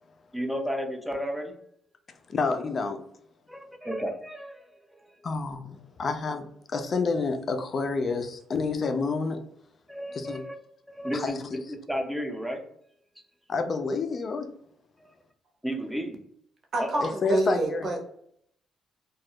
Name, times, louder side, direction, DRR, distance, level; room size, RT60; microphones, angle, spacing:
voice 1, 0.3-1.5 3.5-5.2 9.9-10.5 10.9-12.7 15.0-15.1 15.6-16.2 16.8-17.1, equal, 5° right, 0.5 m, -33 dB
voice 2, 2.3-3.0 5.2-9.4 10.1-10.4 11.1-11.4 13.5-14.5 17.0-17.9, left 4 dB, 45° left, 0.4 m, -29 dB
voice 3, 16.7-18.0, right 2 dB, 50° right, 0.8 m, -27 dB
2.3 x 2.1 x 2.7 m
cardioid pair, 90°, 0 cm